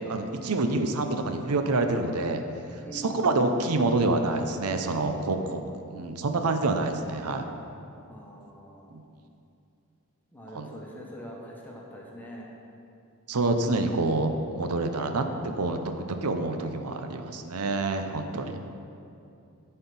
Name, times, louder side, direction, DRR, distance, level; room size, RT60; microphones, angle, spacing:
voice 1, 0.0-2.4 2.9-5.6 5.9-7.5 8.9-9.0 10.5-10.7 13.3-18.6, right 2 dB, 90° right, 6 dB, 0.6 m, -27 dB
voice 2, 2.8-3.6 5.4-5.6 8.1-8.9 10.3-12.5, equal, 10° left, -3 dB, 1.2 m, -43 dB
11.5 x 4.4 x 5.4 m, 2.6 s
head